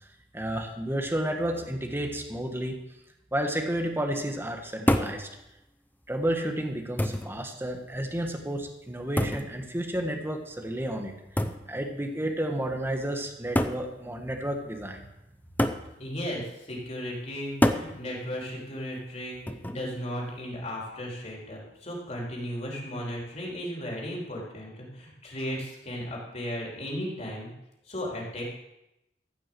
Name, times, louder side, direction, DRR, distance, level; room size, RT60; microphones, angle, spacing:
voice 1, 0.3-2.8 3.3-5.3 6.1-11.1 11.7-15.1, right 1 dB, 15° right, 3 dB, 1.4 m, -31 dB
sound 1, 4.9-5.2 6.2-6.3 7.0-7.4 9.2-9.5 11.4-11.7 12.7-12.8 13.6-13.9 15.6-15.9 17.6-17.9 19.5-19.9, left 1 dB, 10° left, 0.7 m, -26 dB
voice 2, 16.0-27.5 27.9-28.4, equal, 40° left, -3 dB, 3.8 m, -35 dB
14.5 x 6.1 x 7.8 m, 0.89 s
head